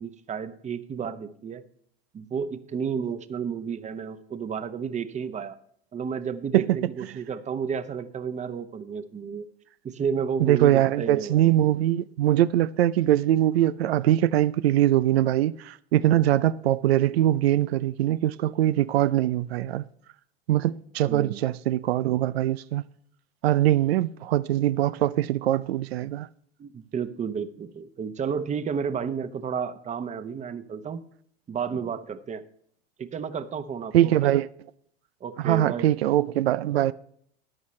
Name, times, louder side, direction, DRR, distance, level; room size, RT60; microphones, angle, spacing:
voice 1, 0.0-1.6 2.1-5.6 5.9-9.4 9.8-11.4 21.1-21.4 26.6-31.0 31.5-32.4 33.0-34.3 35.2-35.9, right 6 dB, 25° right, 0.9 m, -32 dB
voice 2, 10.4-19.9 20.5-22.8 23.4-26.3 33.9-34.5 35.4-36.9, right 13 dB, 90° right, 0.5 m, -22 dB
14.0 x 9.8 x 3.2 m
hypercardioid pair, 105°, 30 cm